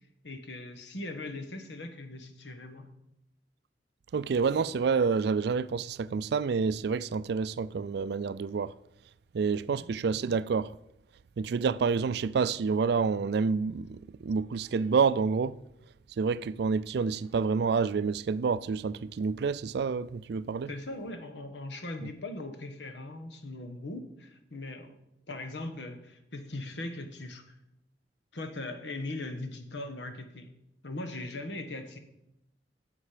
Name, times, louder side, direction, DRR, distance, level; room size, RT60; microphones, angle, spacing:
voice 1, 0.2-2.9 9.7-9.9 19.3-19.4 20.7-25.0 25.3-27.5 28.3-30.6 30.8-32.0, left 2 dB, 85° left, 1.3 m, -40 dB
voice 2, 4.1-8.7 9.3-10.7 11.4-15.6 16.2-20.7, right 5 dB, 65° right, 0.4 m, -28 dB
10.0 x 7.5 x 5.0 m
head